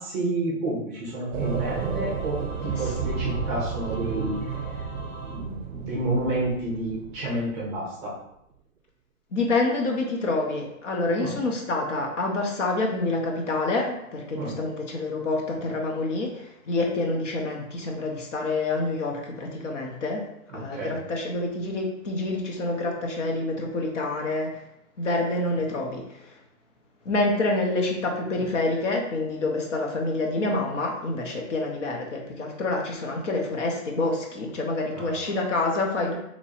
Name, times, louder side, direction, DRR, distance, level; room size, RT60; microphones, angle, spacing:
voice 1, 0.0-2.4 2.6-4.4 5.2-8.1 11.2-11.3 14.3-14.5 20.5-20.9 35.0-35.1, right 1 dB, 5° right, -6 dB, 0.7 m, -30 dB
Singing / Musical instrument, 1.3-6.2, equal, 80° left, 1.2 m, -43 dB
sound 1, 1.3-7.5, right 6 dB, 60° right, 0.5 m, -32 dB
voice 2, 9.3-20.3 20.5-24.7 25.0-26.4 27.0-36.2, left 2 dB, 55° left, 1 dB, 0.8 m, -27 dB
3.0 x 2.6 x 4.1 m, 0.79 s
hypercardioid pair, 175°, 43 cm